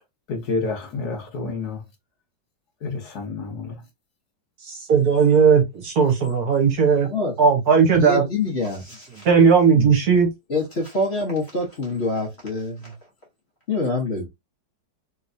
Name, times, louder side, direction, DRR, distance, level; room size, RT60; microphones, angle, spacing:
voice 1, 0.3-1.8 2.8-3.7 9.7-9.9, left 4 dB, 60° left, 1.5 m, -29 dB
voice 2, 4.6-7.1 7.4-8.2 9.2-10.3, right 6 dB, 60° right, 1.3 m, -17 dB
voice 3, 8.0-9.3 10.5-12.9 13.7-14.3, left 2 dB, 45° left, 1.0 m, -26 dB
3.4 x 3.0 x 2.6 m
omnidirectional pair, 2.0 m